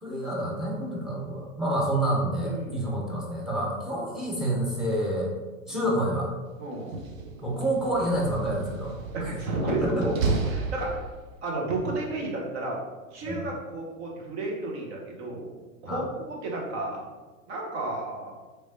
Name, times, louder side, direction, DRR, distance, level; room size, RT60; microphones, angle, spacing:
voice 1, 0.0-5.3 5.7-6.3 7.4-9.3 9.7-10.1 13.2-13.4 15.9-16.0, right 1 dB, ahead, -3 dB, 0.7 m, -28 dB
voice 2, 2.4-3.0 5.7-5.9 6.6-7.0 9.1-11.0 11.4-12.8 13.1-15.5 15.8-17.0 17.5-18.3, right 2 dB, 50° right, -2 dB, 1.1 m, -32 dB
Slam, 6.8-11.5, right 4 dB, 70° right, 0.7 m, -34 dB
3.4 x 3.1 x 2.8 m, 1.3 s
figure-of-eight pair, 100°, 41 cm